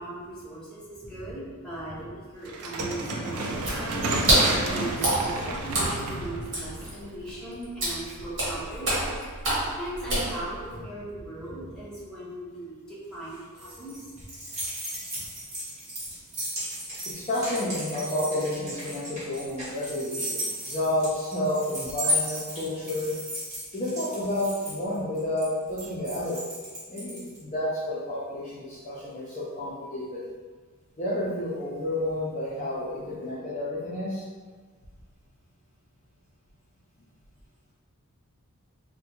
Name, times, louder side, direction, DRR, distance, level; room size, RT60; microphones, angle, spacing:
voice 1, 0.0-14.3 15.1-15.3, right 1 dB, 5° left, -10 dB, 0.8 m, -39 dB
sound 1, 2.4-7.6, right 2 dB, 80° right, 0.4 m, -31 dB
Water / Splash splatter, 3.5-10.8, right 1 dB, 55° right, 1.2 m, -28 dB
sound 2, 13.1-27.4, equal, 30° right, 1.2 m, -34 dB
voice 2, 17.1-23.1 23.7-26.4 26.9-30.2 31.0-34.2, left 1 dB, 35° left, -8 dB, 0.5 m, -30 dB
3.5 x 2.1 x 2.9 m, 1.4 s
head